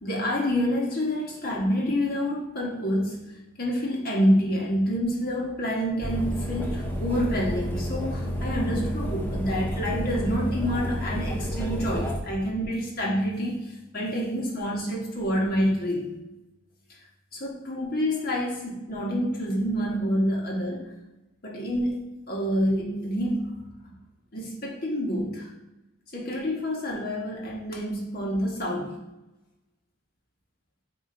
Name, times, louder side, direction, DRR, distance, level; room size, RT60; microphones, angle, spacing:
voice 1, 0.0-16.1 17.3-20.9 21.4-22.0 22.3-23.5 24.3-25.5 26.1-29.0, equal, 45° left, -3 dB, 1.5 m, -27 dB
sound 1, 6.0-12.2, equal, 10° left, 0.6 m, -30 dB
8.8 x 3.0 x 3.9 m, 0.97 s
head